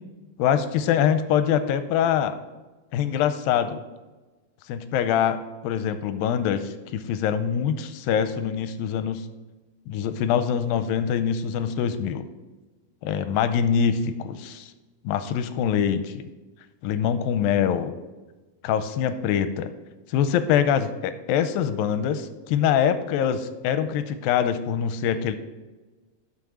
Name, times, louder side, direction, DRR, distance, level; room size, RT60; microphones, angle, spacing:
voice 1, 0.4-2.4 2.9-3.8 4.7-9.2 9.9-12.3 13.0-14.7 15.0-16.2 16.8-17.9 18.6-19.7 20.1-25.4, left 8 dB, 85° left, 11 dB, 2.4 m, -24 dB
12.0 x 5.6 x 4.9 m, 1.2 s
omnidirectional pair, 4.1 m